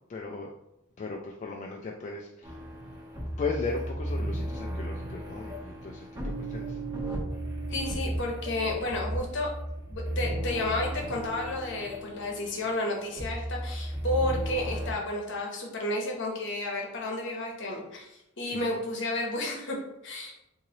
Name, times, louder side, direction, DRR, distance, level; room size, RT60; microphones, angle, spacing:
voice 1, 0.1-0.5 1.0-2.6 3.4-6.1 6.5-6.8 18.5-18.7, left 4 dB, 35° left, 0 dB, 0.3 m, -36 dB
sound 1, 2.4-14.9, right 1 dB, 20° right, 1.1 m, -35 dB
voice 2, 7.7-9.5 9.9-19.8 20.0-20.3, left 2 dB, 60° left, 0 dB, 1.0 m, -32 dB
3.1 x 2.7 x 3.8 m, 0.87 s
head